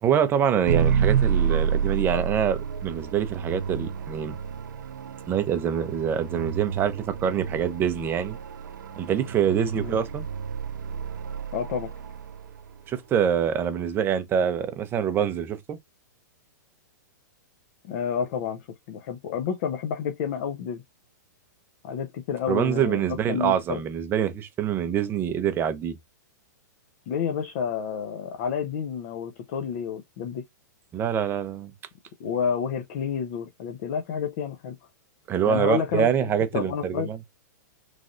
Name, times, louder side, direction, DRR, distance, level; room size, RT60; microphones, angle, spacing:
voice 1, 0.0-4.3 5.3-8.4 9.0-10.3 12.9-15.8 22.5-26.0 30.9-31.7 35.3-37.2, right 8 dB, 20° right, 0.5 m, -25 dB
sound 1, 0.7-12.8, right 7 dB, 80° right, 0.5 m, -29 dB
voice 2, 11.5-11.9 17.8-20.8 21.8-23.8 27.1-30.4 32.2-34.8 35.5-37.1, left 7 dB, 50° left, 0.6 m, -30 dB
3.2 x 2.6 x 2.4 m
hypercardioid pair, 135°, 10 cm